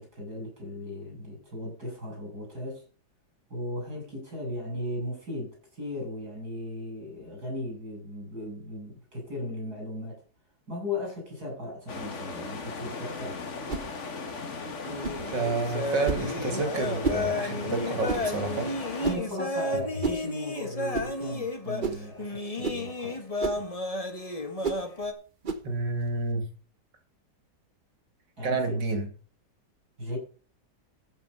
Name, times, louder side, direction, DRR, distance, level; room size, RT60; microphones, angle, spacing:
voice 1, 0.0-2.8 3.5-10.2 10.7-13.4 19.0-23.3 28.4-28.8 30.0-30.2, left 1 dB, 60° right, 7.7 m, -37 dB
sound 1, 11.9-19.1, left 4 dB, 45° left, 1.8 m, -37 dB
sound 2, 13.7-13.9 15.0-15.2 16.0-16.3 17.0-17.3 18.1-18.3 19.0-19.3 20.0-20.2 20.9-21.1 21.8-22.1 22.6-22.8 23.4-23.6 24.6-24.8 25.4-25.7, right 4 dB, 35° right, 1.0 m, -31 dB
sound 3, 14.8-25.1, left 2 dB, 20° left, 1.5 m, -33 dB
voice 2, 15.3-19.0 25.6-26.4 28.4-29.1, right 3 dB, 90° right, 3.1 m, -30 dB
14.5 x 6.3 x 5.5 m
omnidirectional pair, 1.9 m